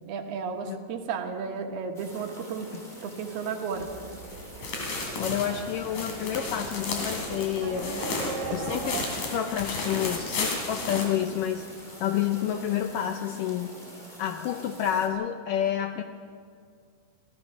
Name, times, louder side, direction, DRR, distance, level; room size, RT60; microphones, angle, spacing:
voice 1, 0.0-2.7 3.0-3.9, right 5 dB, 75° right, 4 dB, 3.4 m, -33 dB
sound 1, 1.9-15.1, equal, 15° left, 2.5 m, -46 dB
Livestock farm animals working animals, 3.7-9.1, right 4 dB, 60° right, 3.6 m, -38 dB
sound 2, 4.3-12.0 12.3-12.4 12.9-13.0, left 3 dB, 55° left, 4.2 m, -34 dB
voice 2, 5.2-8.0 8.3-9.0 9.3-11.7 12.0-13.8 14.2-16.0, left 10 dB, 75° left, 7 dB, 2.0 m, -29 dB
27.0 x 16.0 x 6.1 m, 2.2 s
omnidirectional pair, 4.6 m